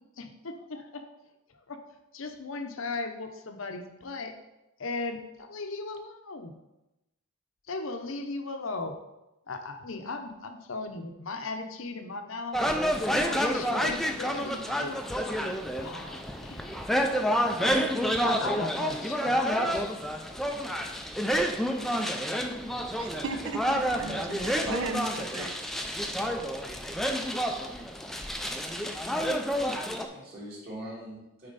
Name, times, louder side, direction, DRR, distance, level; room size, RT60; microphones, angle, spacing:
voice 1, 0.2-1.0 1.7-1.8 2.1-4.3 4.8-6.5 7.7-9.0 9.5-12.6 13.1-15.0 15.8-16.7 17.6-17.9 18.2-19.9, left 3 dB, 70° left, 6 dB, 0.8 m, -37 dB
sound 1, 12.5-30.1, equal, ahead, 0.4 m, -29 dB
voice 2, 22.9-26.1, right 3 dB, 75° right, 7 dB, 0.7 m, -37 dB
voice 3, 30.1-31.5, right 1 dB, 45° right, -6 dB, 2.8 m, -43 dB
8.8 x 4.3 x 4.0 m, 0.95 s
head